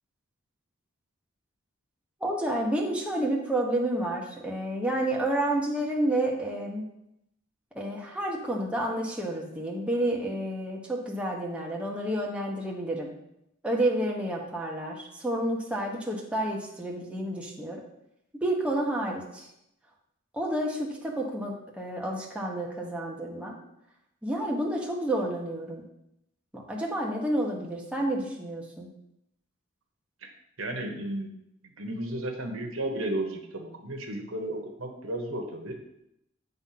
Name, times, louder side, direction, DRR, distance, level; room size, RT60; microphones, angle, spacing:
voice 1, 2.2-6.9 7.7-13.1 13.6-17.8 18.4-19.5 20.3-23.6 24.2-25.8 26.5-28.9, right 1 dB, 5° right, -2 dB, 1.1 m, -30 dB
voice 2, 30.6-31.3 31.8-35.8, right 1 dB, 80° right, 3 dB, 1.2 m, -33 dB
8.9 x 3.8 x 5.8 m, 0.81 s
head